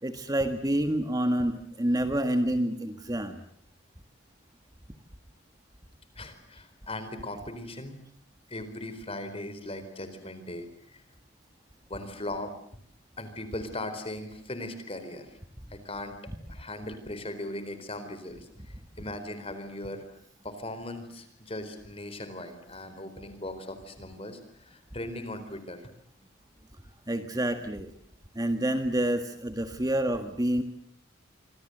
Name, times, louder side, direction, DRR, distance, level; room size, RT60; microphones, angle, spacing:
voice 1, 0.0-3.4 27.1-27.9 28.3-30.6, right 1 dB, 20° right, 8 dB, 1.7 m, -28 dB
voice 2, 6.2-8.0 8.5-11.0 11.9-12.5 13.2-15.4 15.7-16.2 16.5-20.2 20.4-25.9, left 1 dB, 30° left, 10 dB, 4.2 m, -39 dB
27.0 x 25.0 x 7.9 m, 0.63 s
head